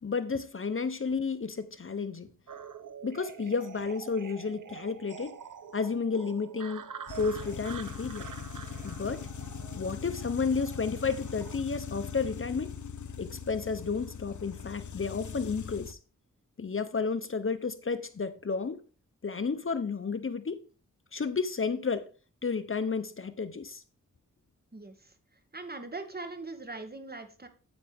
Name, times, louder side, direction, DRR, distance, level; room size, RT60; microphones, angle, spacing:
voice 1, 0.0-2.3 3.0-5.3 5.7-6.9 7.1-8.3 8.8-9.3 9.7-12.7 13.2-16.0 16.6-18.8 19.2-20.6 21.1-22.1 22.4-23.8, left 5 dB, 40° left, 1.0 m, -32 dB
sound 1, 2.5-11.6, right 7 dB, 80° right, 1.0 m, -46 dB
sound 2, 7.1-15.9, left 6 dB, 70° left, 0.9 m, -41 dB
voice 2, 24.7-25.1 25.5-27.5, right 3 dB, 30° right, 2.1 m, -41 dB
9.2 x 9.0 x 3.6 m
wide cardioid pair, 75°, 31 cm